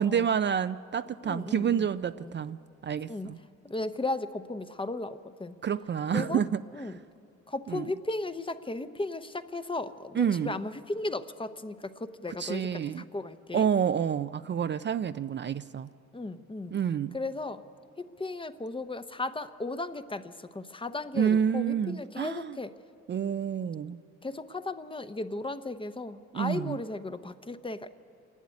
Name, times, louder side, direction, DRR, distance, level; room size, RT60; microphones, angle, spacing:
voice 1, 0.0-2.6 2.8-3.4 5.6-6.6 7.7-7.8 10.2-10.6 12.4-13.0 13.5-15.9 16.7-17.2 21.2-22.6 23.1-24.0 26.3-26.8, right 8 dB, 40° right, 12 dB, 0.4 m, -28 dB
voice 2, 1.2-1.9 2.2-2.3 3.1-3.3 3.6-5.6 6.1-6.4 6.7-7.0 7.5-13.7 16.1-16.8 17.1-17.6 18.0-22.7 24.2-27.9, left 2 dB, 15° left, 11 dB, 0.8 m, -36 dB
26.5 x 11.5 x 9.6 m, 2.5 s
cardioid pair, 90°, 30 cm